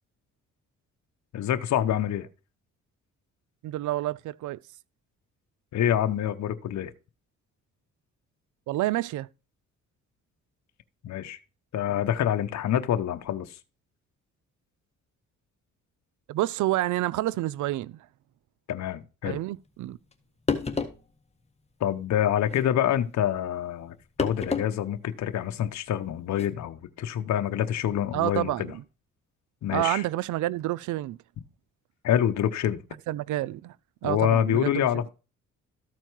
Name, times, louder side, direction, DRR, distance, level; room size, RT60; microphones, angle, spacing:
voice 1, 1.3-2.3 5.7-6.9 11.0-11.4 11.7-13.6 18.7-19.4 21.8-28.7 29.6-30.0 32.0-32.8 34.0-35.1, left 10 dB, 65° left, 0.9 m, -26 dB
voice 2, 3.6-4.6 8.7-9.3 16.3-18.1 19.2-20.0 28.1-28.8 29.7-31.2 33.1-33.7 34.0-34.9, right 15 dB, 75° right, 0.5 m, -28 dB
sound 1, 20.1-20.2 20.5-21.0 22.4-22.7 24.2-24.7 25.1-25.2 26.3-26.5, left 4 dB, 20° left, 1.5 m, -29 dB
13.5 x 4.5 x 4.6 m
cardioid pair, 90°, 30 cm